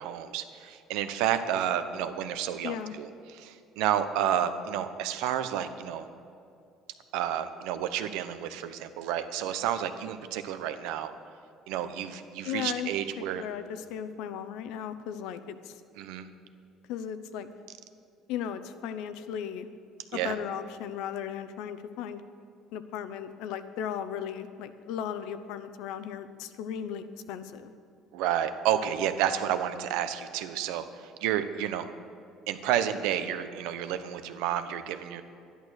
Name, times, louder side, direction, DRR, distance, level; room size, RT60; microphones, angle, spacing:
voice 1, 0.0-6.0 7.1-11.1 11.7-13.4 16.0-16.3 20.1-20.4 28.1-31.9 32.5-35.2, right 10 dB, 85° right, 10 dB, 0.9 m, -30 dB
voice 2, 2.6-2.9 12.4-12.9 13.2-15.7 16.9-17.5 18.3-19.7 20.1-22.2 22.7-27.7, left 9 dB, 70° left, 11 dB, 0.8 m, -36 dB
13.0 x 11.0 x 6.5 m, 2.5 s
cardioid pair, 175°, 0 cm